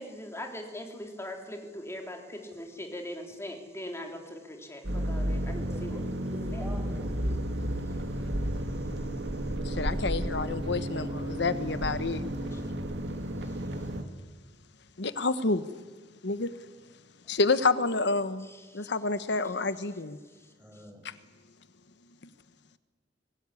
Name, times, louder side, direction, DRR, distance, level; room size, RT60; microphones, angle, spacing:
voice 1, 0.0-6.0 6.5-6.7 12.5-12.6, left 1 dB, 15° left, 3.4 m, -40 dB
sound 1, 4.8-14.0, right 1 dB, 70° right, 2.2 m, -32 dB
voice 2, 5.6-7.4 20.6-21.0, equal, 10° right, 5.0 m, -45 dB
voice 3, 9.6-12.2 15.0-15.6 16.2-16.5 17.3-18.5 18.7-20.2 21.0-21.1, left 3 dB, 70° left, 1.1 m, -28 dB
23.5 x 18.5 x 9.9 m
head